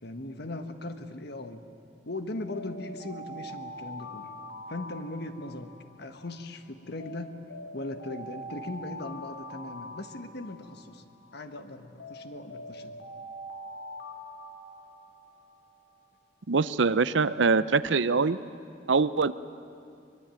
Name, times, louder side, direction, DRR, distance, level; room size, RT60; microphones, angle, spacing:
voice 1, 0.0-1.6 2.0-4.3 4.7-5.7 6.0-7.3 7.7-11.0 11.3-13.0, left 2 dB, 60° left, 8 dB, 1.5 m, -39 dB
Alarm, 2.3-6.5 7.0-11.5 12.0-15.8, equal, 80° left, 3.3 m, -44 dB
voice 2, 16.5-18.4 18.9-19.3, right 4 dB, 85° right, 15 dB, 0.7 m, -23 dB
23.5 x 22.0 x 9.1 m, 2.4 s
head